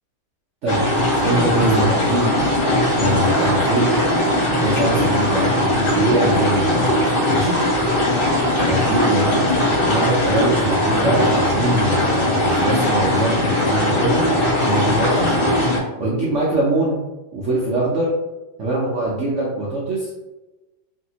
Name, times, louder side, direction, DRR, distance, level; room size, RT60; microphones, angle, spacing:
voice 1, 0.6-3.9 4.5-7.6 8.6-9.5 9.8-14.2 14.6-15.6 16.0-17.0 17.3-18.1 18.6-20.1, right 1 dB, 65° right, -5 dB, 0.7 m, -23 dB
sound 1, 0.7-15.8, left 1 dB, 45° left, 0.7 m, -19 dB
3.2 x 2.6 x 2.8 m, 1.1 s
omnidirectional pair, 1.9 m